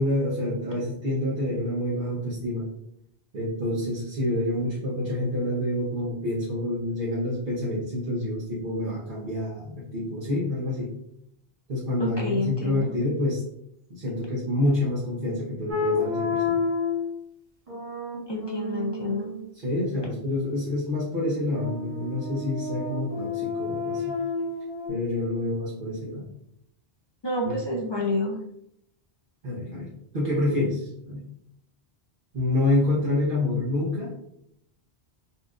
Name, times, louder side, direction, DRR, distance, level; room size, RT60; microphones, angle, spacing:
voice 1, 0.0-2.7 3.3-10.9 11.7-13.4 13.9-16.6 19.6-24.2 24.9-26.3 27.4-27.6 29.4-31.3 32.3-34.1, left 1 dB, 60° right, -6 dB, 0.9 m, -27 dB
voice 2, 12.0-12.9 18.3-19.3 27.2-28.4, left 2 dB, 40° left, -1 dB, 0.4 m, -28 dB
sound 1, 15.7-17.1 17.7-19.4 21.5-24.9, left 4 dB, 35° right, 1.0 m, -30 dB
4.1 x 2.4 x 2.4 m, 0.75 s
omnidirectional pair, 1.1 m